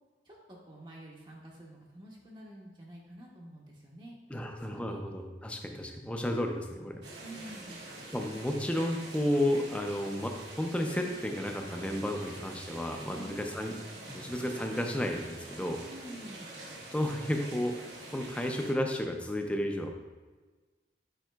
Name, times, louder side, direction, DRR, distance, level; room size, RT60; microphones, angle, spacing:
voice 1, 0.2-5.0 7.2-7.9 13.1-13.4 15.8-16.5, right 1 dB, 25° right, -2 dB, 0.7 m, -48 dB
voice 2, 4.3-7.0 8.1-13.7 14.1-15.8 16.9-19.9, left 1 dB, 5° left, 3 dB, 0.4 m, -32 dB
sound 1, 7.0-18.7, right 2 dB, 80° right, 1.1 m, -46 dB
9.0 x 4.8 x 2.2 m, 1.3 s
head